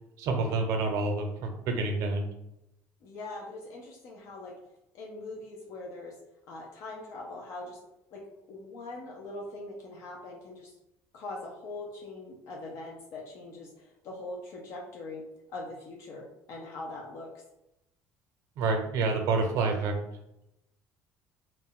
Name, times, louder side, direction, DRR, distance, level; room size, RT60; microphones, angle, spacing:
voice 1, 0.2-2.3 18.6-19.9, right 3 dB, 65° right, 4 dB, 0.6 m, -28 dB
voice 2, 3.0-4.5 4.9-6.2 6.5-7.8 8.1-10.8 11.1-15.2 15.5-16.2 16.5-17.3, left 2 dB, 60° left, -2 dB, 0.5 m, -42 dB
2.5 x 2.2 x 3.6 m, 0.85 s
cardioid pair, 135°, 6 cm